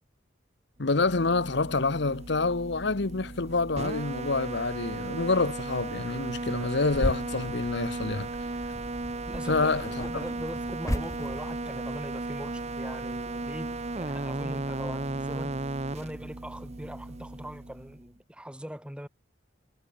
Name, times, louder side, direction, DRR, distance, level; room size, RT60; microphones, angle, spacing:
voice 1, 0.8-8.3 9.5-10.0, left 3 dB, 65° left, 1.1 m, -27 dB
sound 1, 0.8-18.1, right 2 dB, 35° right, 0.9 m, -35 dB
sound 2, 6.9-11.8, left 1 dB, 15° left, 1.3 m, -36 dB
voice 2, 9.3-9.7 10.0-15.6 15.9-19.1, equal, 5° right, 3.0 m, -41 dB
head